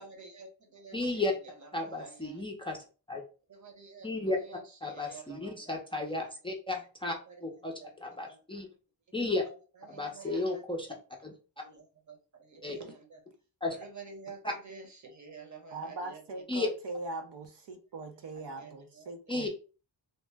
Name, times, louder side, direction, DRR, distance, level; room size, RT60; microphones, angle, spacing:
voice 1, 0.0-2.4 3.5-4.1 4.4-6.3 7.3-8.4 9.2-11.0 11.6-13.2 13.7-16.4 18.3-19.5, right 4 dB, 40° right, 3 dB, 0.9 m, -50 dB
voice 2, 0.9-1.3 1.7-2.8 3.1-3.2 4.0-4.4 4.8-7.1 7.4-7.7 8.0-8.7 9.1-9.4 9.9-10.9 11.2-11.3 12.6-12.8 13.6-13.8 14.4-14.5 16.5-16.7 19.3-19.5, left 2 dB, 10° left, 1 dB, 0.5 m, -33 dB
voice 3, 15.7-19.5, right 2 dB, 70° right, 6 dB, 0.6 m, -40 dB
2.8 x 2.0 x 3.3 m, 0.35 s
wide cardioid pair, 100°, 44 cm